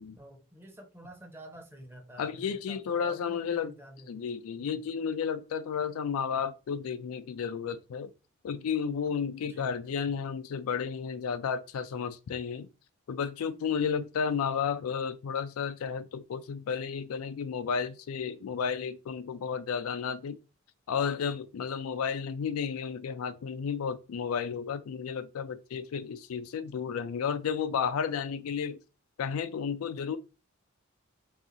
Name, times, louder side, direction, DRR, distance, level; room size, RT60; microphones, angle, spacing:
voice 1, 0.2-4.8 9.4-9.8, equal, 10° right, 0.6 m, -50 dB
voice 2, 2.2-3.7 4.1-8.1 8.4-12.7 13.1-20.4 20.9-28.8 29.2-30.2, left 6 dB, 85° left, 0.4 m, -32 dB
2.8 x 2.4 x 3.8 m
head